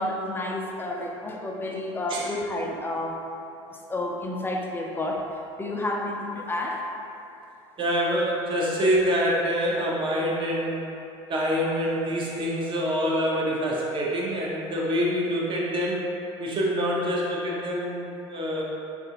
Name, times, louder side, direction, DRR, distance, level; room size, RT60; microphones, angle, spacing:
voice 1, 0.0-3.2 3.7-5.2 5.6-6.8, left 1 dB, 15° left, 0 dB, 0.4 m, -30 dB
voice 2, 7.8-10.9 11.3-16.1 16.4-18.6, equal, 35° right, -4 dB, 0.8 m, -26 dB
3.3 x 2.5 x 2.8 m, 2.7 s
hypercardioid pair, 75°, 14 cm